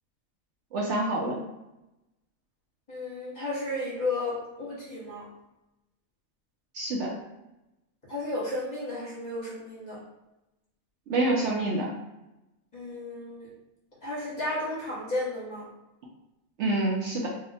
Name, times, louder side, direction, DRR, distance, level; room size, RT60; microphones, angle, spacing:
voice 1, 0.7-1.4 6.7-7.1 11.1-11.9 16.6-17.3, right 2 dB, 65° right, -2 dB, 0.8 m, -27 dB
voice 2, 2.9-5.3 8.1-10.0 12.7-13.5 14.0-15.7, left 2 dB, 35° left, -7 dB, 1.1 m, -33 dB
2.7 x 2.1 x 4.0 m, 0.95 s
omnidirectional pair, 1.4 m